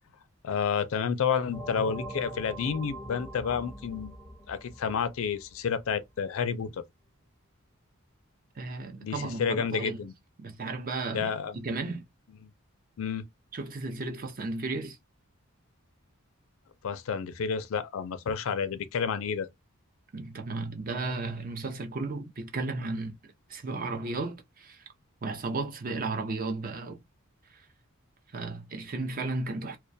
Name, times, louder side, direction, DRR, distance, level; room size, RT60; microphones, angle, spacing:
voice 1, 0.4-4.2 4.5-6.8 9.0-10.1 11.1-11.6 12.4-12.5 13.0-13.3 16.8-19.5, left 6 dB, 65° left, 0.4 m, -30 dB
sound 1, 1.5-5.9, right 1 dB, 5° right, 0.8 m, -42 dB
voice 2, 8.6-10.0 10.4-12.0 13.5-15.0 20.1-24.8 25.2-27.0 28.3-29.8, right 3 dB, 40° right, 0.5 m, -34 dB
2.2 x 2.2 x 2.6 m
head